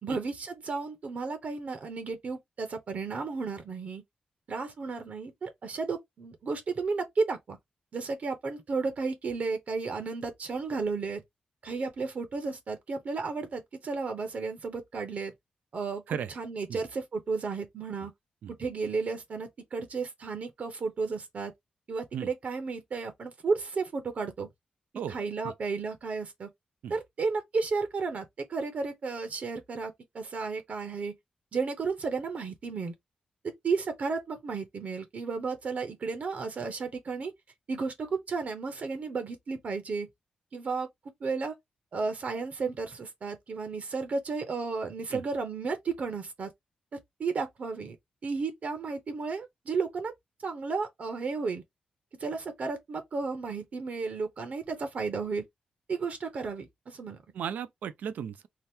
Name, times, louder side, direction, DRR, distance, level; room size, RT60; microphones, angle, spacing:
voice 1, 0.0-4.0 4.5-7.6 7.9-11.2 11.6-15.3 15.7-16.0 16.3-18.1 18.6-21.5 21.9-24.5 25.1-26.5 26.9-28.2 28.5-31.1 31.5-32.9 33.4-37.3 37.7-40.1 40.5-40.9 41.2-41.6 41.9-46.5 47.2-48.0 48.2-50.1 50.4-51.6 52.2-55.4 55.9-57.2, right 4 dB, 60° right, 0.8 m, -33 dB
voice 2, 57.3-58.5, right 8 dB, 85° right, 0.4 m, -35 dB
2.9 x 2.1 x 3.5 m
cardioid pair, 65°, 3 cm